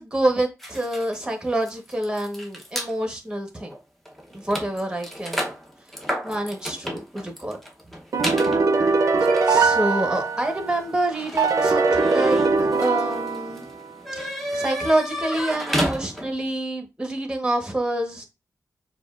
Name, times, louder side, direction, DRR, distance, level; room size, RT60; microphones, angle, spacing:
voice 1, 0.0-3.7 4.3-5.5 6.2-7.6 9.5-12.4 12.8-13.7 14.2-18.3, right 1 dB, 15° right, 1.1 m, -27 dB
sound 1, 0.6-2.9 3.6-3.8 4.0-16.5, equal, 5° left, 0.8 m, -33 dB
sound 2, 8.1-10.7 11.4-13.8, right 4 dB, 60° right, 0.5 m, -21 dB
6.8 x 2.3 x 2.4 m
wide cardioid pair, 105°, 6 cm